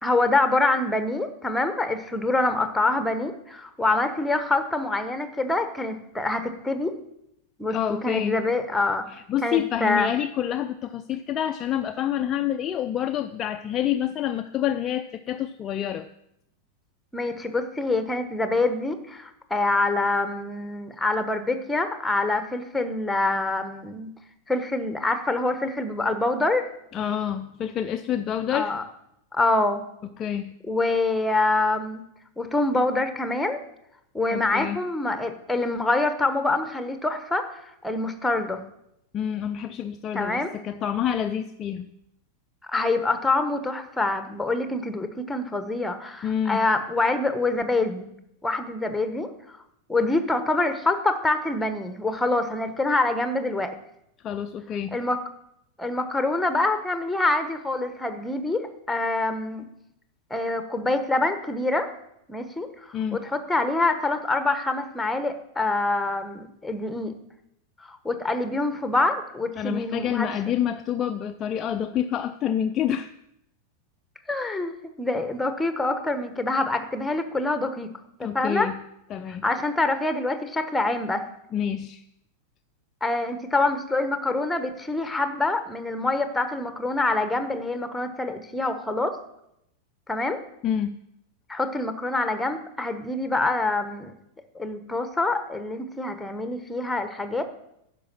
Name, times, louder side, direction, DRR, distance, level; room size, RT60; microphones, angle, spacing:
voice 1, 0.0-6.9 7.6-7.8 8.0-9.0 9.4-10.1 17.1-24.1 24.5-26.7 28.5-28.8 29.3-29.8 30.6-32.0 32.4-33.6 34.1-38.6 40.1-40.5 42.7-48.1 48.4-49.6 49.9-53.7 54.9-55.2 55.8-59.6 60.3-61.9 62.3-67.1 67.8-70.3 74.3-77.9 78.2-78.7 79.4-81.2 83.0-89.2 90.1-90.4 91.5-94.1 94.5-97.4, left 2 dB, 5° left, 9 dB, 1.1 m, -25 dB
voice 2, 7.7-8.4 9.1-16.1 26.9-28.7 30.2-30.6 34.3-34.8 39.1-41.9 46.2-46.7 54.2-55.0 62.9-63.3 69.6-73.1 78.2-78.8 79.1-79.5 81.5-82.0 90.6-91.0, left 9 dB, 30° left, 8 dB, 0.4 m, -28 dB
10.0 x 6.0 x 7.5 m, 0.79 s
figure-of-eight pair, 90°, 0 cm